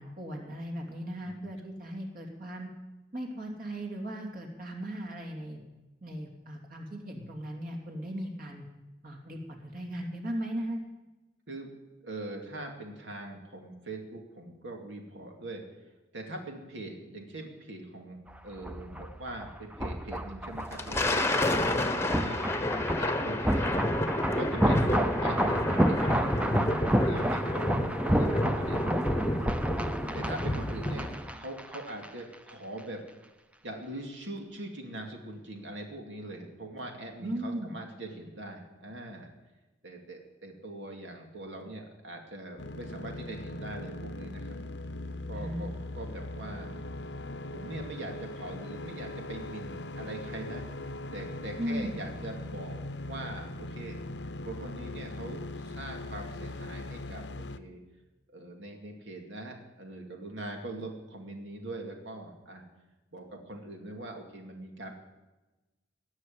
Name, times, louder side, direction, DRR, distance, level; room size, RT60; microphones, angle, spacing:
voice 1, 0.0-2.7 3.1-5.6 6.0-8.6 9.0-10.8 37.2-37.7 45.3-45.6 51.6-52.0, equal, 50° right, 2 dB, 2.9 m, -37 dB
voice 2, 12.0-15.6 16.1-18.2 18.4-21.2 21.6-23.7 24.1-26.4 27.0-27.8 28.1-29.5 30.1-33.0 33.6-39.3 39.8-44.6 45.3-46.9 47.5-50.6 51.1-54.0 54.4-57.8 58.3-62.6 63.1-64.9, right 1 dB, 85° right, 2 dB, 2.5 m, -42 dB
sound 1, 18.3-32.1 32.3-32.5, equal, 5° right, 0.6 m, -31 dB
Thunder, 20.5-31.3, left 1 dB, 15° left, 1.0 m, -30 dB
sound 2, 42.6-57.6, left 2 dB, 65° left, 0.7 m, -40 dB
19.0 x 6.4 x 9.4 m, 1.1 s
head